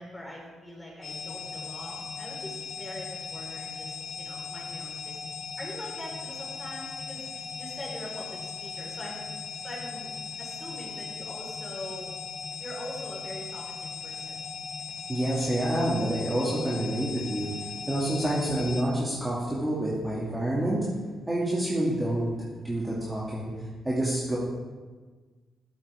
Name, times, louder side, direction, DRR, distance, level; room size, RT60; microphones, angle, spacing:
voice 1, 0.0-5.2 5.6-9.3 9.6-12.1 12.6-14.4, equal, 5° left, -4 dB, 4.5 m, -42 dB
sound 1, 1.0-18.8, left 5 dB, 50° left, 3.3 m, -38 dB
voice 2, 15.1-17.5 17.9-20.8 21.3-22.3 22.6-23.5 23.8-24.4, right 1 dB, 10° right, -7 dB, 2.4 m, -28 dB
15.0 x 12.5 x 3.6 m, 1.4 s
cardioid pair, 125°, 0 cm